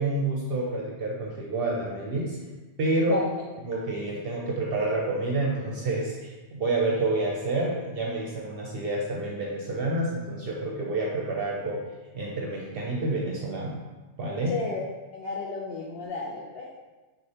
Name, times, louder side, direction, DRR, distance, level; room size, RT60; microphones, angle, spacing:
voice 1, 0.0-2.4 2.8-3.2 3.6-11.8 12.1-13.8 14.2-14.5, right 2 dB, 60° right, -3 dB, 0.7 m, -28 dB
voice 2, 3.1-3.4 14.5-14.8 15.1-16.8, left 4 dB, 65° left, -4 dB, 0.7 m, -33 dB
6.2 x 2.5 x 2.8 m, 1.2 s
omnidirectional pair, 1.2 m